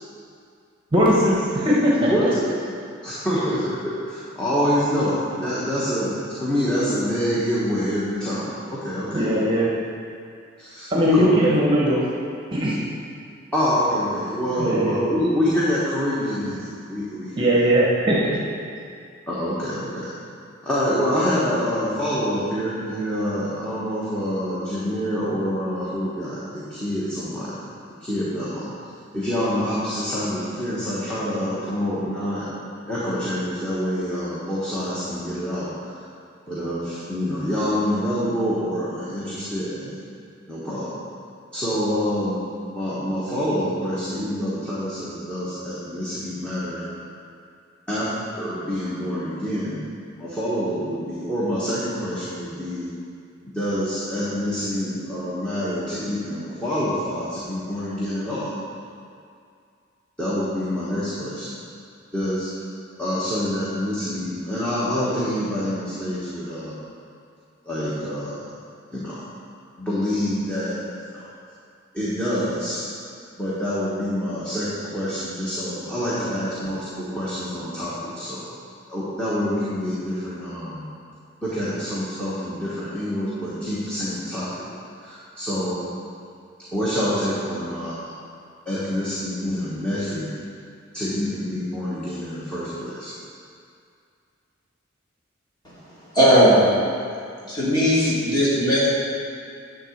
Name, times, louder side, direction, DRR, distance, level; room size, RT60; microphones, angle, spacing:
voice 1, 0.9-1.9 3.4-3.5 9.1-9.7 10.9-12.0 12.5-12.8 14.6-14.9 17.4-18.4, equal, 25° right, -5 dB, 1.1 m, -19 dB
voice 2, 2.0-2.5 3.0-9.5 10.6-11.3 13.5-17.5 19.3-20.1 20.6-27.6 28.0-28.9 29.1-32.4 32.8-36.0 36.5-39.9 40.5-40.9 41.5-42.4 42.7-46.8 47.9-48.1 48.3-49.8 50.2-52.9 53.4-58.5 60.2-61.6 62.1-62.5 63.0-66.8 67.6-68.4 68.9-69.2 69.8-71.3 71.9-72.8 73.3-78.5 78.9-80.9 81.4-84.6 85.0-85.8 86.7-88.1 88.6-90.3 90.9-93.1, equal, 5° left, -10 dB, 1.3 m, -26 dB
voice 3, 96.1-96.7 97.5-98.9, equal, 20° left, -9 dB, 2.3 m, -17 dB
10.0 x 3.8 x 6.6 m, 2.4 s
head